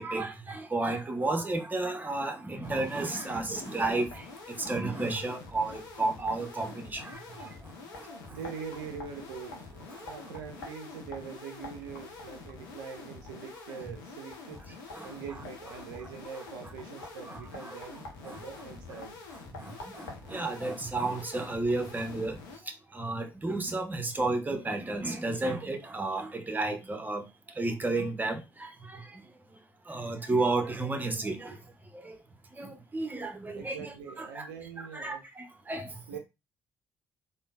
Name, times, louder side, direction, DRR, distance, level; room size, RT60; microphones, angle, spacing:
voice 1, 0.0-4.2 4.6-7.2 14.9-15.1 17.3-17.8 18.2-18.4 19.6-22.4 22.9-27.3 27.6-29.0 29.9-31.6 32.0-32.1 32.6-34.5 34.8-36.0, right 2 dB, 15° right, 0.7 m, -32 dB
sound 1, 2.6-22.6, left 3 dB, 75° left, 0.6 m, -46 dB
voice 2, 8.3-14.6 15.0-19.1 33.5-35.2 36.1-36.2, right 6 dB, 70° right, 0.4 m, -43 dB
3.5 x 2.0 x 2.3 m
figure-of-eight pair, 45°, 11 cm